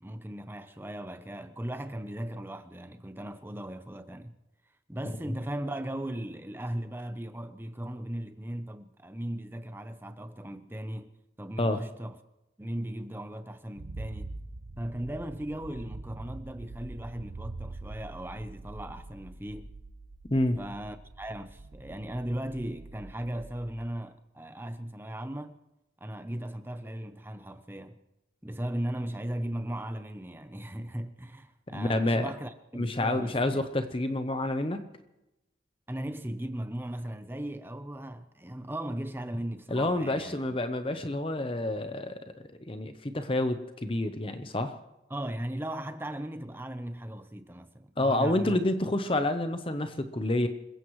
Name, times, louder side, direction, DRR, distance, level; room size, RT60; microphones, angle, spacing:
voice 1, 0.0-4.4 4.9-11.1 11.4-12.2 12.6-14.3 14.8-19.7 20.6-25.6 26.0-28.0 28.4-33.6 35.9-40.3 45.1-48.6, right 1 dB, 10° right, 0.7 m, -37 dB
sound 1, 13.8-23.9, right 2 dB, 60° right, 0.8 m, -44 dB
voice 2, 31.7-32.3 32.7-34.8 39.7-44.8 48.0-50.5, left 1 dB, 30° left, 0.8 m, -28 dB
27.0 x 15.5 x 3.2 m
head